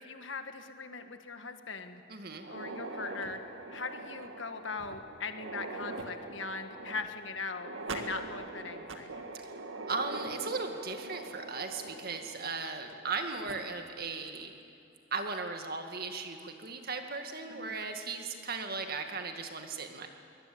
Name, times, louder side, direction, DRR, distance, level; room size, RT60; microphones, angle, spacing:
voice 1, 0.0-2.0 2.5-3.4 3.7-9.1 17.5-17.9, left 4 dB, 75° left, 7 dB, 1.6 m, -40 dB
voice 2, 2.1-2.4 9.4-9.5 9.9-14.5 15.1-20.1, right 4 dB, 50° right, 5 dB, 2.0 m, -37 dB
sound 1, 2.3-13.1 13.4-13.5 14.3-14.4 15.0-15.1 16.4-16.7, right 2 dB, 85° right, 1.9 m, -43 dB
22.5 x 21.0 x 8.7 m, 2.6 s
head